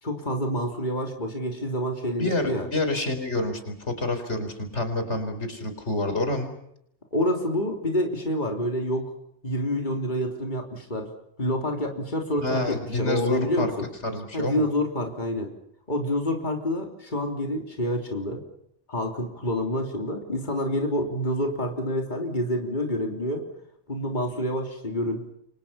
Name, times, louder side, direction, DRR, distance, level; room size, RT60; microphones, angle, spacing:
voice 1, 0.0-2.7 7.1-9.1 9.4-11.1 11.4-13.9 14.3-15.5 15.9-18.4 18.9-23.5 23.9-25.3, equal, 45° left, 2 dB, 3.6 m, -28 dB
voice 2, 2.2-6.5 12.4-13.7 14.0-14.6, left 2 dB, 85° left, 7 dB, 4.8 m, -28 dB
29.0 x 25.0 x 5.8 m, 0.74 s
omnidirectional pair, 1.1 m